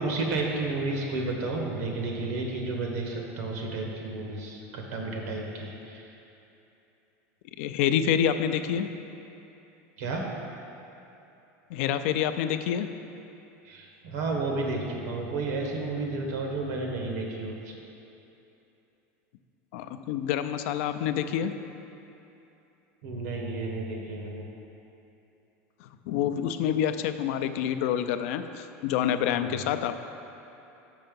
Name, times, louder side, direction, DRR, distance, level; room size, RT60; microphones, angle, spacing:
voice 1, 0.0-6.1 10.0-10.3 13.6-17.7 23.0-24.4 29.5-29.6, right 3 dB, 80° right, 0 dB, 1.2 m, -32 dB
voice 2, 7.6-8.9 11.7-12.9 19.7-21.5 25.8-29.9, left 9 dB, 70° left, 9 dB, 0.4 m, -27 dB
5.8 x 5.5 x 5.3 m, 2.9 s
supercardioid pair, 125°, 7 cm